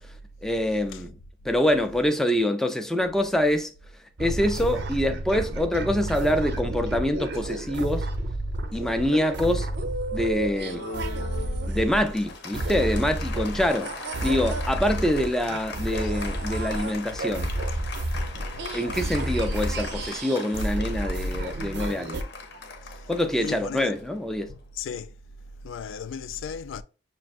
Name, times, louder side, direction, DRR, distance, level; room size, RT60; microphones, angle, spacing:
voice 1, 0.4-1.2 1.4-3.7 4.2-8.1 8.7-9.7 10.1-10.9 11.6-14.0 14.2-17.5 18.7-22.2 23.1-24.5, left 1 dB, 5° left, 0.4 m, -25 dB
sound 1, 4.2-12.2 12.5-22.2, right 1 dB, 65° right, 0.5 m, -31 dB
Applause, 10.5-24.5, left 4 dB, 65° left, 0.8 m, -40 dB
voice 2, 23.4-23.9 24.5-25.1 25.6-26.8, left 6 dB, 80° left, 0.3 m, -36 dB
6.1 x 2.5 x 2.4 m
head